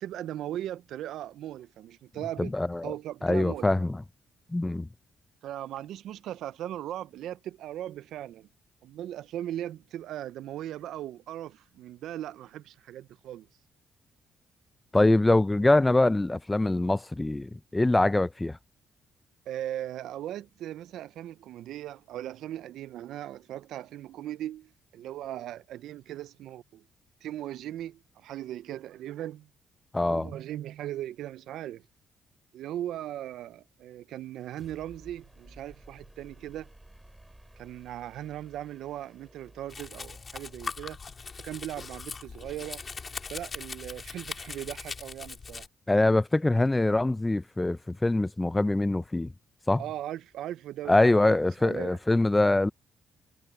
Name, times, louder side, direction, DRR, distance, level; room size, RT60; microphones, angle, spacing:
voice 1, 0.0-2.5 2.8-3.7 5.4-8.5 8.8-13.5 19.5-26.8 27.2-29.5 30.1-31.8 32.5-36.7 37.6-41.0 41.4-42.8 43.3-45.7 49.8-52.0, right 12 dB, 80° right, 0.4 m, -38 dB
voice 2, 2.4-2.9 3.2-4.0 4.5-4.9 14.9-18.6 29.9-30.3 45.9-49.3 49.7-49.8 50.9-52.7, left 2 dB, 15° left, 0.5 m, -24 dB
sound 1, 34.3-44.0, right 1 dB, 10° right, 5.6 m, -56 dB
Domestic sounds home sounds, 39.7-45.7, left 4 dB, 35° left, 4.4 m, -40 dB
cardioid pair, 90°, 0 cm